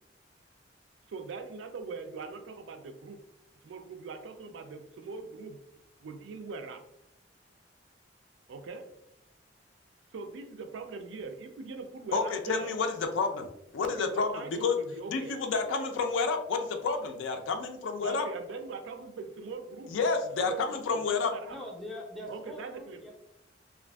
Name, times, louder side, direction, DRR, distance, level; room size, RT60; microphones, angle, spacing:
voice 1, 1.1-3.2 3.6-5.6 6.0-6.8 8.5-8.9 10.1-12.7 13.8-15.4 18.0-20.0 20.4-21.6 22.3-23.1, right 4 dB, 90° right, 7 dB, 0.4 m, -41 dB
voice 2, 12.1-13.5 13.7-14.7 15.1-18.3 19.9-21.3, left 4 dB, 85° left, 5 dB, 0.3 m, -30 dB
voice 3, 21.5-23.1, left 1 dB, ahead, -2 dB, 0.4 m, -43 dB
2.5 x 2.4 x 2.2 m, 0.80 s
head